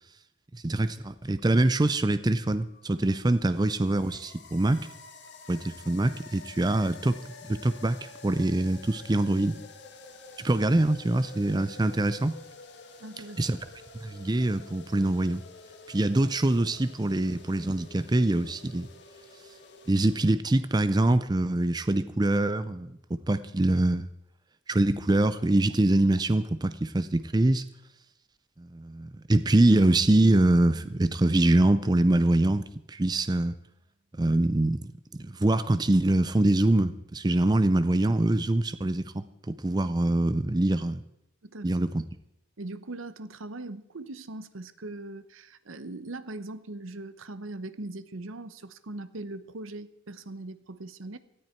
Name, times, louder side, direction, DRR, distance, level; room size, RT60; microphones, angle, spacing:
voice 1, 0.5-4.9 5.5-7.2 7.4-9.6 10.4-12.4 13.4-13.6 14.0-15.4 15.9-18.9 19.9-23.0 23.3-24.1 24.7-27.6 28.6-33.5 34.2-34.9 35.2-41.0 41.6-42.0, right 1 dB, 20° right, 13 dB, 0.5 m, -24 dB
sound 1, 2.4-20.3, left 3 dB, 55° left, 1.8 m, -49 dB
voice 2, 13.0-13.4 41.4-41.7 42.6-51.2, right 2 dB, 85° right, 13 dB, 0.9 m, -40 dB
sound 2, 29.7-32.9, right 3 dB, 40° right, 1.7 m, -47 dB
18.0 x 13.5 x 4.5 m, 0.80 s
head